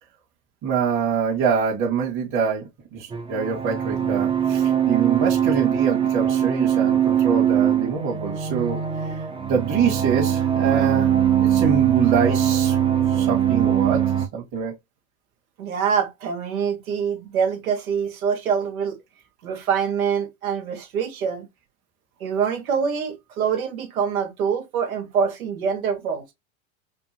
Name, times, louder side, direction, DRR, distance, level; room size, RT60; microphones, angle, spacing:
voice 1, 0.6-9.2 9.5-11.1 11.4-12.8 13.1-14.0 14.3-14.8, right 6 dB, 45° right, 1.8 m, -25 dB
sound 1, 3.1-14.3, right 9 dB, 15° right, 0.6 m, -21 dB
voice 2, 15.6-19.0 19.4-21.5 22.2-26.2, right 7 dB, 90° right, 1.4 m, -25 dB
5.2 x 2.5 x 2.8 m
hypercardioid pair, 105°, 41 cm